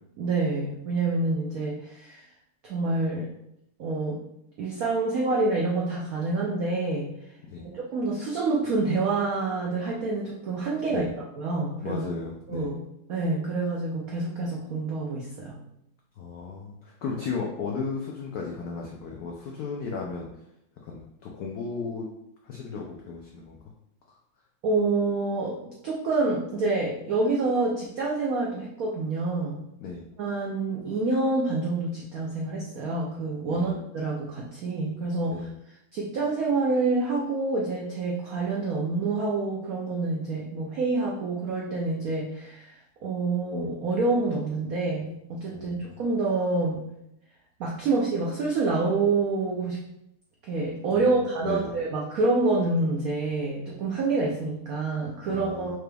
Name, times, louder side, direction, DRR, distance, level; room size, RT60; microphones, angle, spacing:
voice 1, 0.2-2.3 2.6-3.3 3.8-4.2 4.6-7.1 7.7-12.1 12.5-12.8 13.1-15.6 24.6-25.6 25.8-29.6 30.2-35.5 35.9-42.8 43.0-46.9 47.6-49.8 50.4-55.8, right 3 dB, 90° right, -3 dB, 0.7 m, -27 dB
voice 2, 11.8-12.7 16.2-20.3 20.8-22.0 22.4-23.6 24.1-24.2 29.8-30.1 33.5-33.7 35.3-35.4 45.5-46.0 50.9-51.7 55.3-55.8, left 4 dB, 85° left, -1 dB, 0.8 m, -35 dB
4.8 x 3.3 x 2.2 m, 0.80 s
omnidirectional pair, 2.3 m